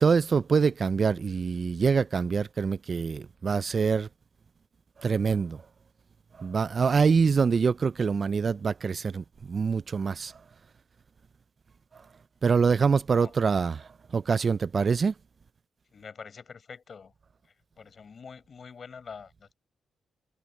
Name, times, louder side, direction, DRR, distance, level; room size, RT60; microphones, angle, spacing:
voice 1, 0.0-4.1 5.0-5.6 6.4-10.3 11.9-12.0 12.4-15.1, right 5 dB, 40° right, 0.3 m, -25 dB
voice 2, 15.9-17.1 17.8-19.5, left 6 dB, 45° left, 5.4 m, -45 dB
cardioid pair, 115°, 0 cm